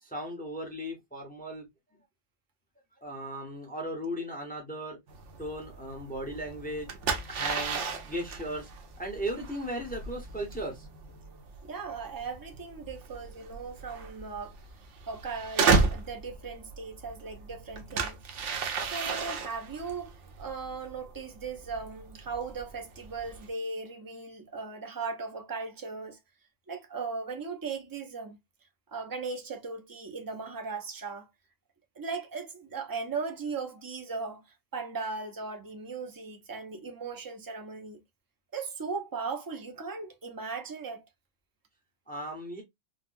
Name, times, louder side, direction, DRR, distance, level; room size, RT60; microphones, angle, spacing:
voice 1, 0.0-1.7 3.0-5.0 5.4-7.0 7.3-8.7 9.0-10.9 42.1-42.6, equal, 10° left, 0.8 m, -36 dB
sound 1, 5.1-23.5, right 4 dB, 70° right, 1.0 m, -34 dB
voice 2, 11.6-14.6 15.1-18.2 18.8-26.2 26.7-28.4 28.9-31.3 32.0-34.4 34.7-38.0 38.5-41.0, right 4 dB, 30° right, 0.4 m, -38 dB
3.9 x 2.1 x 2.5 m
omnidirectional pair, 1.3 m